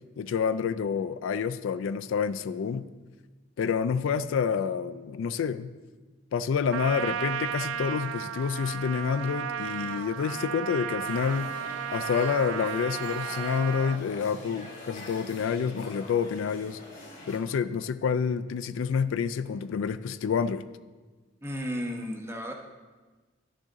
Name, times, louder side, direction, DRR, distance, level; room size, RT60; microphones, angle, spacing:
voice 1, 0.2-2.9 3.6-5.7 6.3-11.6 11.9-16.8 17.3-20.6, left 6 dB, 75° left, 14 dB, 0.3 m, -28 dB
Trumpet, 6.7-14.0, right 9 dB, 90° right, 0.3 m, -34 dB
sound 1, 11.0-17.4, left 1 dB, 35° left, 1.9 m, -45 dB
voice 2, 21.4-22.5, equal, 15° right, 2 dB, 0.9 m, -33 dB
11.5 x 6.4 x 3.7 m, 1.3 s
head